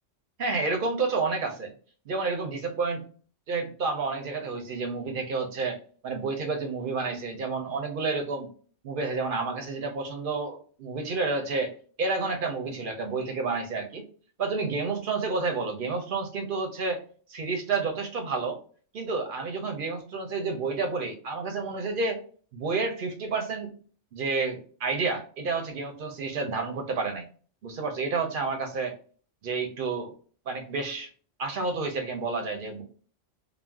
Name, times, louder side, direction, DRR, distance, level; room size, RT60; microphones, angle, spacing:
voice 1, 0.4-1.7 2.1-3.1 3.5-5.8 6.0-8.5 8.8-11.7 12.0-14.0 14.4-17.0 17.3-18.6 18.9-22.2 22.5-23.7 24.1-27.2 27.6-28.9 29.4-30.1 30.5-31.1 31.4-32.8, right 4 dB, 55° right, 4 dB, 0.7 m, -30 dB
2.4 x 2.0 x 3.4 m, 0.42 s
omnidirectional pair, 1.3 m